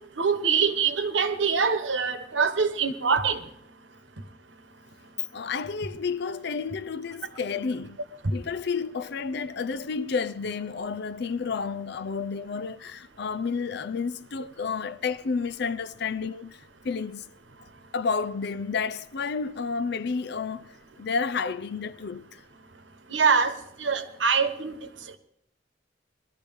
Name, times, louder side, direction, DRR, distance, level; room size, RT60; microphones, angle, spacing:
voice 1, 0.2-3.4 23.1-23.5 23.8-24.8, right 5 dB, 85° right, 1.2 m, -24 dB
voice 2, 5.3-8.0 8.3-17.3 17.9-22.4, left 5 dB, 65° left, 0.5 m, -31 dB
21.0 x 13.0 x 3.5 m
head